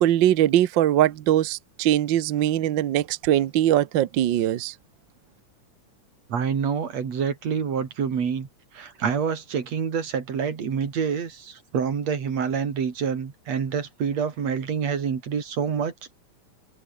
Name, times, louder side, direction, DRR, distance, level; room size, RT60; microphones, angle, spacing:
voice 1, 0.0-4.7, right 12 dB, 80° right, 1.0 m, -21 dB
voice 2, 6.3-8.5 8.7-16.1, right 6 dB, 60° right, 3.9 m, -27 dB
omnidirectional pair, 3.4 m